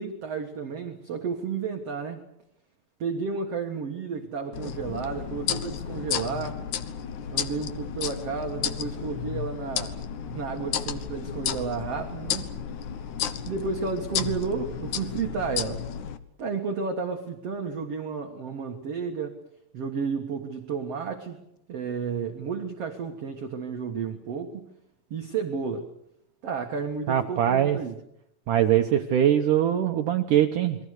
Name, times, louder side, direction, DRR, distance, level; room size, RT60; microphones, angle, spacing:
voice 1, 0.0-2.2 3.0-6.6 7.3-10.0 10.3-12.5 13.4-15.8 16.4-19.4 19.7-21.4 21.7-24.6 25.1-25.9 26.4-27.9, right 5 dB, 55° right, 3 dB, 1.7 m, -32 dB
sound 1, 4.5-16.2, left 9 dB, 70° left, 1.9 m, -32 dB
voice 2, 27.1-27.8 28.5-30.8, right 10 dB, 75° right, 6 dB, 1.9 m, -22 dB
28.5 x 23.0 x 6.7 m, 0.80 s
omnidirectional pair, 5.0 m